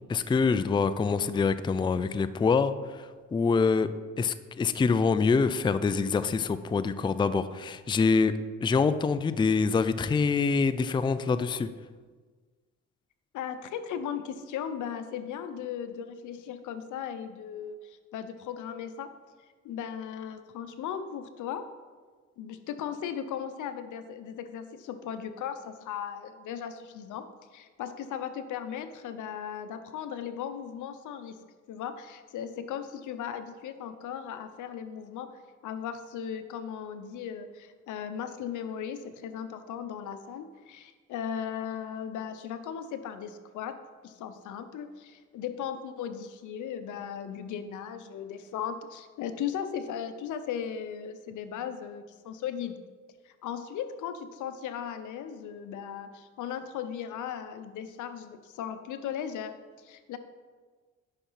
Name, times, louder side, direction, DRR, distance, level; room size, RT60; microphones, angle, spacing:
voice 1, 0.1-8.3 8.6-11.7, left 4 dB, 15° left, 13 dB, 0.4 m, -25 dB
voice 2, 13.3-19.1 19.6-21.6 22.4-31.4 31.7-35.3 35.6-43.8 44.0-52.8 53.2-60.2, left 8 dB, 80° left, 10 dB, 0.8 m, -37 dB
10.0 x 5.7 x 5.6 m, 1.4 s
cardioid pair, 90°, 30 cm